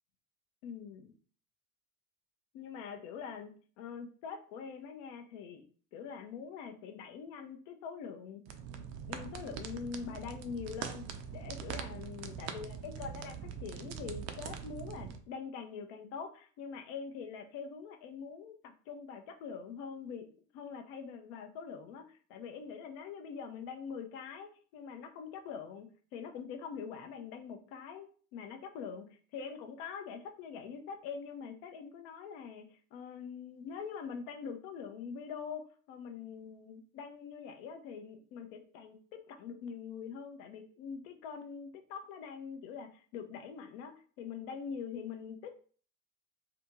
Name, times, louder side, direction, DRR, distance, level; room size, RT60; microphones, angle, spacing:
voice 1, 0.6-1.1 2.5-5.6 5.9-8.4 9.1-11.1 11.3-20.3 20.5-39.0 39.3-45.5, left 6 dB, 50° left, 5 dB, 0.6 m, -44 dB
sound 1, 8.5-15.2, right 7 dB, 40° right, 0.4 m, -43 dB
2.5 x 2.3 x 2.9 m, 0.43 s
figure-of-eight pair, 70°, 45 cm